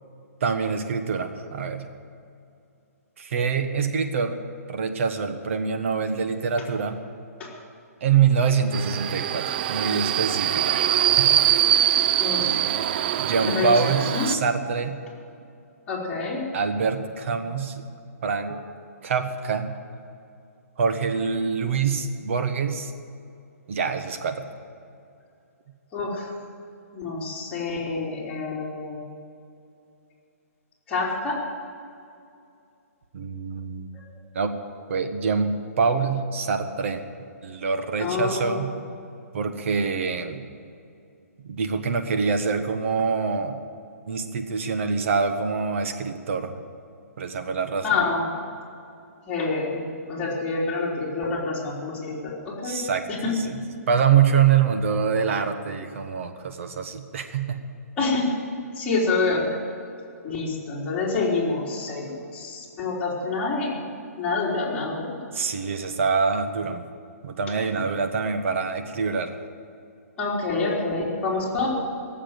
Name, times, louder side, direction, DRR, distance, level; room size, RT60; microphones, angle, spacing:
voice 1, 0.4-1.9 3.2-4.4 4.7-7.0 8.0-11.5 12.4-12.5 13.2-15.0 16.5-17.9 18.2-18.6 19.0-19.7 20.8-22.9 23.7-24.5 33.1-33.9 34.3-34.5 34.9-37.0 37.4-38.7 39.3-40.4 41.4-43.6 44.1-46.6 47.2-48.0 52.6-53.6 53.9-57.6 65.3-66.9 67.2-69.4, right 6 dB, 50° right, 7 dB, 1.4 m, -25 dB
Subway metro underground, 8.7-14.4, right 11 dB, 35° right, 0.4 m, -23 dB
voice 2, 13.4-14.3 15.9-16.4 18.5-18.6 25.9-26.3 26.9-29.0 30.9-31.4 38.0-38.6 47.8-48.2 49.3-52.3 52.6-52.8 58.0-58.3 58.8-59.6 60.2-63.8 64.2-65.3 70.2-71.7, left 3 dB, 15° left, -7 dB, 3.7 m, -27 dB
17.0 x 7.6 x 9.1 m, 2.5 s
hypercardioid pair, 160°, 8 cm